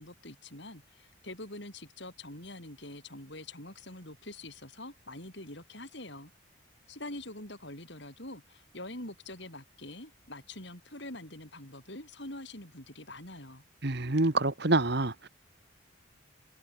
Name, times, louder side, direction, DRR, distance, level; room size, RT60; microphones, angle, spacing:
voice 1, 0.0-6.3 6.9-13.6, left 1 dB, 55° left, 6.4 m, -45 dB
voice 2, 13.8-15.3, right 2 dB, 55° right, 1.4 m, -27 dB
head